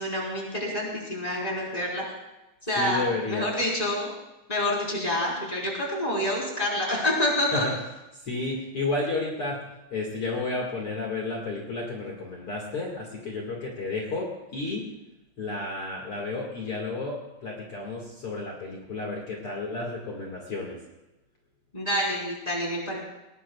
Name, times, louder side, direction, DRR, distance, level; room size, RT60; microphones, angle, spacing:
voice 1, 0.0-2.0 2.7-4.1 4.5-7.7 21.7-23.0, left 1 dB, 10° left, -3 dB, 3.4 m, -27 dB
voice 2, 2.7-3.5 7.5-7.7 8.2-9.6 9.9-14.8 15.4-20.8, left 3 dB, 85° left, -2 dB, 1.2 m, -32 dB
20.0 x 19.5 x 2.4 m, 0.97 s
omnidirectional pair, 5.9 m